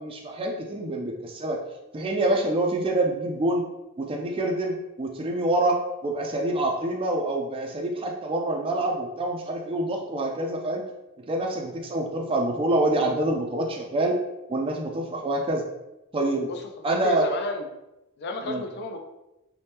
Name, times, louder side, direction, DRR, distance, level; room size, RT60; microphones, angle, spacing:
voice 1, 0.0-1.6 1.9-3.6 4.0-10.8 11.3-14.2 14.5-15.6 16.1-16.5 16.8-17.3 18.5-18.6, right 1 dB, 25° right, 1 dB, 0.3 m, -26 dB
voice 2, 16.5-17.7 18.2-19.0, left 2 dB, 50° left, 4 dB, 0.4 m, -32 dB
2.8 x 2.1 x 3.3 m, 0.95 s
head